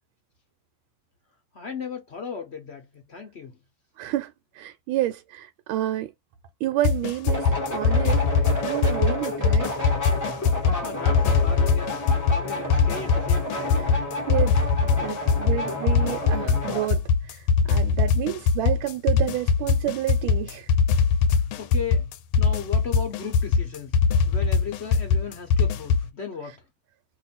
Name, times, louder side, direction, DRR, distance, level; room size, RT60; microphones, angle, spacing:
voice 1, 1.5-3.6 10.8-13.8 21.3-22.1 22.4-23.9 24.2-26.7, left 5 dB, 55° left, 0.7 m, -36 dB
voice 2, 4.0-6.1 6.6-9.8 14.3-17.4 17.7-20.7, right 14 dB, 85° right, 1.4 m, -30 dB
sound 1, 6.8-26.1, left 5 dB, 90° left, 1.4 m, -22 dB
sound 2, 7.3-16.9, left 1 dB, 25° left, 0.4 m, -31 dB
3.0 x 2.5 x 4.1 m
omnidirectional pair, 2.2 m